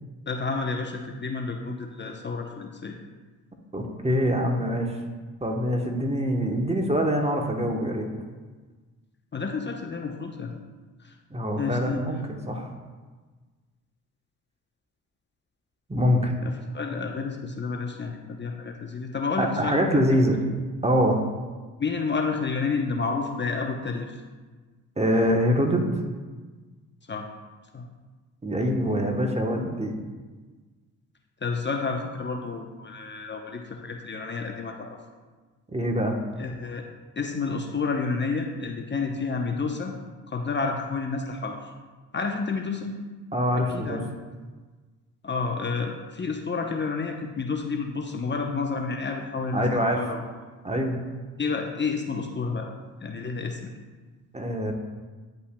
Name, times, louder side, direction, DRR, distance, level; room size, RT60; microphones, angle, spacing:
voice 1, 0.3-3.0 9.3-10.5 11.0-11.1 11.6-12.1 16.4-20.0 21.8-24.2 27.1-27.3 27.7-27.8 31.4-35.0 36.4-36.8 37.2-39.9 40.3-41.7 42.1-43.0 43.5-44.0 45.2-49.7 49.9-50.2 51.4-52.7 53.0-53.7, left 4 dB, 30° left, 2 dB, 0.7 m, -30 dB
voice 2, 3.7-4.9 5.4-8.1 11.3-12.2 12.5-12.7 15.9-16.3 19.4-20.3 20.8-21.2 25.0-26.0 28.4-29.9 35.7-36.2 43.3-44.0 49.5-50.0 50.6-51.0 54.3-54.7, equal, 15° right, 2 dB, 1.0 m, -24 dB
10.0 x 5.4 x 2.2 m, 1.4 s
supercardioid pair, 60°, 38 cm